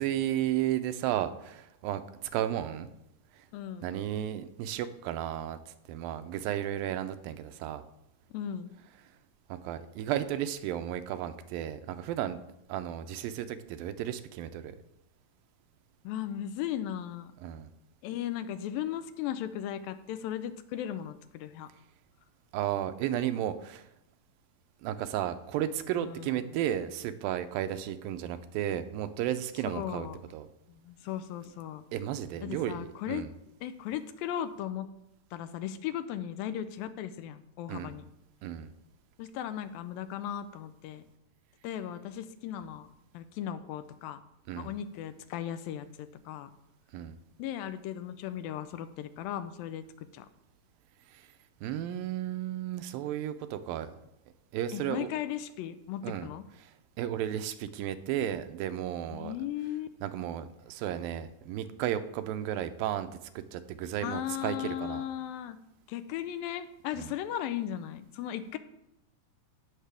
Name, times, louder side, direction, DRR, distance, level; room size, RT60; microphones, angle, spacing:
voice 1, 0.0-2.0 2.3-2.9 3.4-3.5 3.8-5.6 5.9-7.8 9.5-12.4 12.7-14.8 17.4-17.7 22.5-23.9 24.8-30.1 30.3-30.5 31.9-33.3 37.7-38.0 38.4-38.7 44.5-44.7 46.9-47.2 51.1-51.3 51.6-53.9 54.5-55.1 56.0-56.3 56.6-56.7 57.0-59.3 60.0-63.1 63.4-65.0 67.0-67.1, right 11 dB, 85° right, 10 dB, 2.4 m, -33 dB
voice 2, 3.5-3.9 8.3-8.7 16.0-17.3 18.0-21.7 26.0-26.6 29.6-30.2 30.7-31.8 32.4-33.3 33.6-34.9 35.3-38.1 39.2-41.0 41.6-42.9 43.1-44.2 44.6-46.5 47.4-49.8 50.1-50.3 54.7-56.4 59.1-59.9 64.0-65.6 65.9-68.6, left 10 dB, 85° left, 11 dB, 2.4 m, -37 dB
17.0 x 6.6 x 3.5 m, 0.84 s
omnidirectional pair, 4.1 m